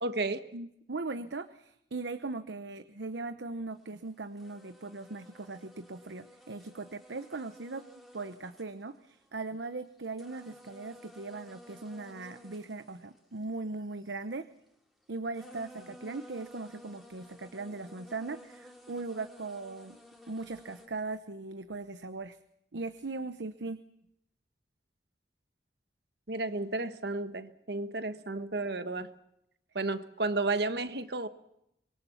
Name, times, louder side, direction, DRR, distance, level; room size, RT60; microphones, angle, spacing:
voice 1, 0.0-0.5 26.3-29.1 29.7-31.3, right 2 dB, 70° right, 1.4 m, -32 dB
voice 2, 0.5-14.5 15.1-20.0 20.3-22.4 22.7-23.8, right 3 dB, 90° right, 0.9 m, -39 dB
sound 1, 3.8-4.0 4.4-9.4 9.8-14.2 15.0-15.1 15.3-20.9, equal, ahead, 3.1 m, -54 dB
25.5 x 22.0 x 7.2 m
head